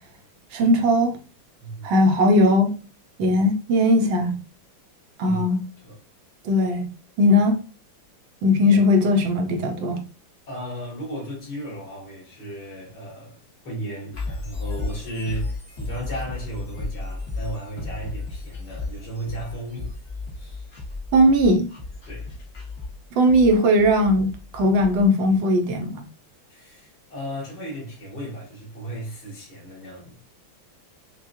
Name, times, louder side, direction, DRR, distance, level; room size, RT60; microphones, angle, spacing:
voice 1, 0.5-1.1 1.8-2.7 3.2-4.4 5.2-5.6 6.4-6.9 7.2-7.6 8.4-10.0 21.1-21.7 23.2-26.0, left 1 dB, 75° right, 1.5 m, -18 dB
voice 2, 1.6-1.9 3.2-3.4 5.2-5.4 5.8-5.9 10.5-19.9 20.4-20.7 22.1-22.4 26.5-30.1, right 1 dB, 60° left, 2.5 m, -35 dB
sound 1, 14.1-25.1, left 3 dB, 35° left, 1.2 m, -34 dB
6.0 x 2.4 x 2.6 m
omnidirectional pair, 2.1 m